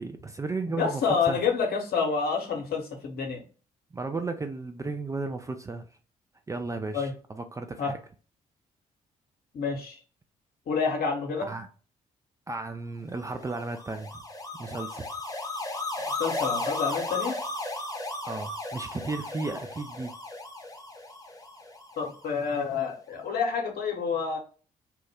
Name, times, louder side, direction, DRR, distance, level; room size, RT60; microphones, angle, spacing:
voice 1, 0.0-1.4 3.9-5.9 6.5-8.0 11.4-11.7 12.5-14.1 14.5-15.0 18.2-20.1, right 3 dB, 15° right, 0.4 m, -34 dB
voice 2, 0.8-3.4 6.9-7.1 7.8-7.9 9.5-10.0 10.7-11.5 16.2-17.4 22.0-24.4, left 5 dB, 50° left, 0.9 m, -28 dB
sound 1, 13.3-22.5, left 2 dB, 20° left, 0.8 m, -35 dB
3.0 x 2.1 x 3.4 m
figure-of-eight pair, 40°, 20 cm